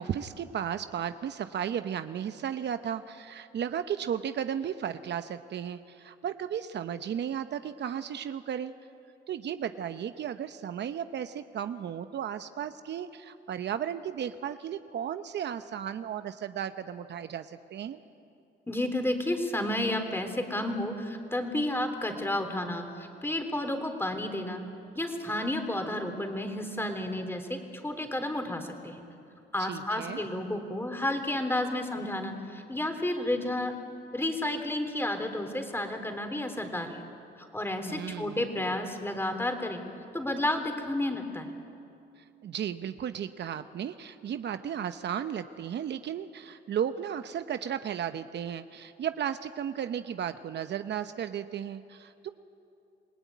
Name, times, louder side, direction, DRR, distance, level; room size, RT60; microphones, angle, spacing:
voice 1, 0.0-8.7 9.3-18.0 29.6-30.3 37.9-38.8 42.4-52.3, right 9 dB, 60° right, 10 dB, 0.9 m, -34 dB
voice 2, 18.7-24.6 24.9-29.0 29.5-33.7 34.1-36.9 37.4-39.8 40.1-41.5, left 1 dB, 10° left, 5 dB, 3.5 m, -31 dB
28.0 x 19.0 x 9.4 m, 2.6 s
cardioid pair, 90°, 20 cm